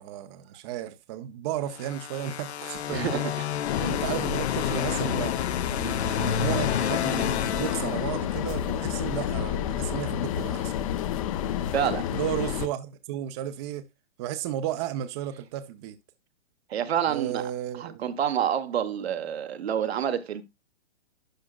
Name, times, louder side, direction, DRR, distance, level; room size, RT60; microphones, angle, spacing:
voice 1, 0.0-3.3 3.8-5.4 5.7-10.8 12.1-13.9 14.2-16.0 17.1-18.1, right 11 dB, 25° right, 0.5 m, -34 dB
sound 1, 1.7-8.6, left 9 dB, 85° left, 0.7 m, -30 dB
sound 2, 3.6-12.7, left 10 dB, 35° left, 0.5 m, -30 dB
voice 2, 11.7-12.1 16.7-17.4 17.8-20.4, right 9 dB, 75° right, 1.0 m, -28 dB
11.5 x 4.8 x 2.2 m
hypercardioid pair, 145°, 32 cm